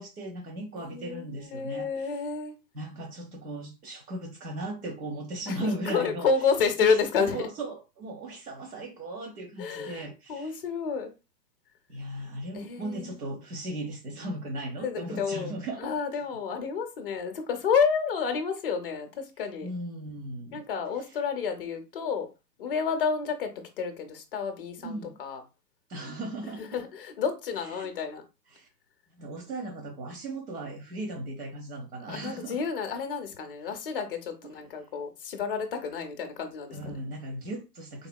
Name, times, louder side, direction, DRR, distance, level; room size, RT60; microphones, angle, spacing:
voice 1, 0.0-2.1 2.7-6.3 6.8-10.6 11.9-15.9 19.6-20.6 24.8-25.2 25.9-26.7 27.7-27.9 28.5-28.7 29.2-32.7 36.7-38.1, right 1 dB, 65° right, 1.0 m, -37 dB
voice 2, 0.8-2.6 5.5-7.5 9.6-11.1 12.5-13.2 14.8-15.5 15.8-19.7 20.5-22.3 22.6-25.4 26.6-28.2 32.0-37.0, left 5 dB, 35° left, 0.6 m, -30 dB
3.6 x 2.7 x 2.2 m
hypercardioid pair, 150°, 50 cm